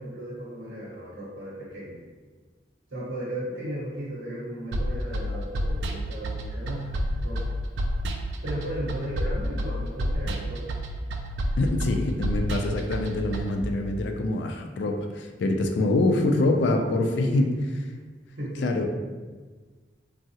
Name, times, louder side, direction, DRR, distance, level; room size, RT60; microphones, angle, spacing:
voice 1, 0.0-2.0 2.9-6.9 7.2-7.5 8.4-10.7 16.7-16.9 17.3-17.4 18.4-18.7, equal, 85° right, -8 dB, 0.8 m, -35 dB
sound 1, 4.7-13.6, equal, 65° right, 0.3 m, -30 dB
voice 2, 11.6-17.5 18.6-18.9, left 2 dB, 70° left, 4 dB, 0.3 m, -25 dB
3.5 x 2.0 x 2.7 m, 1.4 s
head